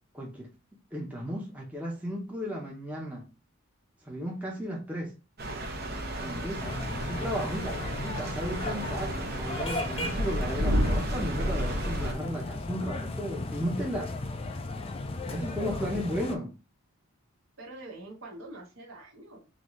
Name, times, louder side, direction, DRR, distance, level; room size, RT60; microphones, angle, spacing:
voice 1, 0.1-0.5 0.9-3.2 4.0-5.1 6.2-14.1 15.3-16.5, equal, 5° right, 0.8 m, -35 dB
sound 1, 5.4-12.1, equal, 45° right, 0.7 m, -32 dB
sound 2, 6.6-16.3, left 2 dB, 25° left, 0.3 m, -36 dB
voice 2, 15.5-16.4 17.6-19.5, right 2 dB, 65° right, 1.3 m, -45 dB
3.9 x 2.7 x 3.1 m
head